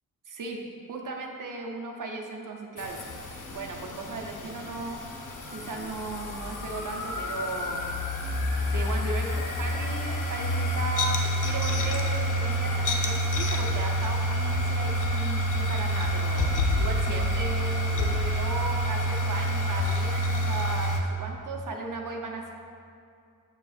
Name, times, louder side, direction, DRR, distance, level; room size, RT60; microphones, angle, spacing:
voice 1, 0.3-0.6 0.9-3.0 3.5-5.2 5.5-7.8 8.7-22.5, right 3 dB, 60° right, 1 dB, 0.7 m, -36 dB
sound 1, 2.8-21.0, equal, 60° left, 0.7 m, -28 dB
7.0 x 6.9 x 2.4 m, 2.5 s
wide cardioid pair, 115°, 35 cm